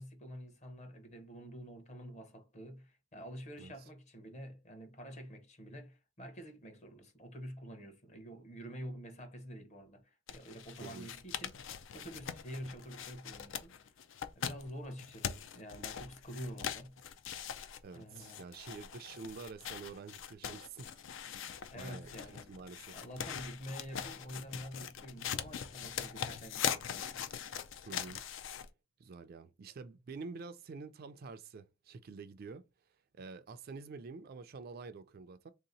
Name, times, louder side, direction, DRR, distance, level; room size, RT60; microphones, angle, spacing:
voice 1, 0.0-14.0 14.3-17.0 17.9-18.4 21.7-22.5 22.9-27.2, equal, 35° left, 0.9 m, -48 dB
sound 1, 10.3-28.7, left 8 dB, 65° left, 0.4 m, -42 dB
voice 2, 17.8-21.0 21.4-22.1 22.5-23.0 27.9-28.2 29.0-32.6 33.1-35.5, right 4 dB, 50° right, 0.3 m, -48 dB
3.4 x 2.8 x 3.9 m
head